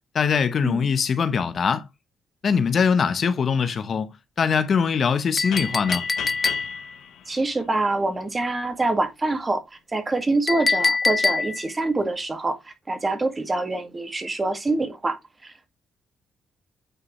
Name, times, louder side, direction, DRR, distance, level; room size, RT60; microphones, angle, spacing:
voice 1, 0.1-1.9 2.4-4.1 4.4-6.0, left 6 dB, 50° left, 0.9 m, -22 dB
Chink clink, 5.4-7.0 10.5-11.8, left 4 dB, 30° left, 0.4 m, -24 dB
sound 1, 5.5-8.3, left 10 dB, 80° left, 1.3 m, -36 dB
voice 2, 7.3-9.6 9.9-15.7, right 2 dB, 25° right, 1.9 m, -25 dB
8.9 x 4.8 x 3.1 m
cardioid pair, 90°, 0 cm